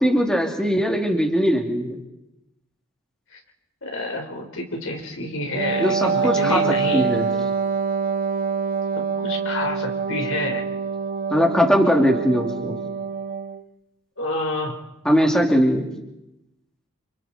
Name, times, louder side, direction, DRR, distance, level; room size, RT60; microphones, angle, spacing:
voice 1, 0.0-2.0 5.8-7.3 11.3-12.8 15.0-15.9, equal, 5° left, 1 dB, 3.0 m, -20 dB
voice 2, 3.8-7.1 8.9-10.6 14.2-14.8, left 2 dB, 65° left, 2 dB, 4.7 m, -28 dB
Wind instrument woodwind instrument, 5.5-13.6, right 5 dB, 40° right, 1.1 m, -25 dB
29.0 x 29.0 x 4.5 m, 0.92 s
head